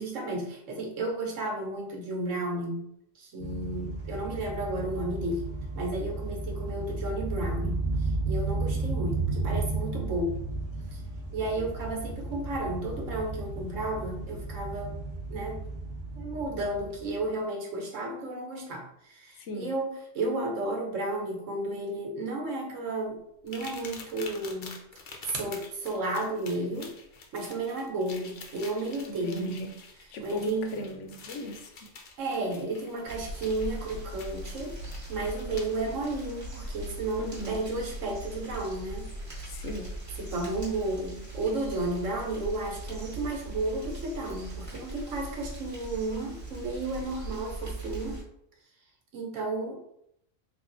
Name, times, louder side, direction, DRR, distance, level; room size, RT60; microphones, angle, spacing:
voice 1, 0.0-2.8 3.1-10.4 10.9-11.0 11.3-15.0 15.3-15.7 16.2-24.8 25.2-26.9 27.3-29.8 30.2-30.8 32.2-34.8 35.1-39.1 40.2-48.2 49.1-49.8, right 2 dB, 80° right, 1 dB, 1.3 m, -33 dB
sound 1, 3.4-17.2, right 3 dB, 60° right, 1.1 m, -33 dB
voice 2, 19.4-19.7 29.1-29.7 30.1-31.9 37.2-37.5 39.5-39.9, left 1 dB, 75° left, 4 dB, 0.9 m, -38 dB
sound 2, 23.5-35.8 37.1-37.2 37.8-37.9, left 4 dB, 55° left, 0.6 m, -48 dB
sound 3, 33.1-48.2, right 1 dB, 15° right, 1.1 m, -40 dB
3.4 x 2.4 x 3.8 m, 0.74 s
omnidirectional pair, 1.3 m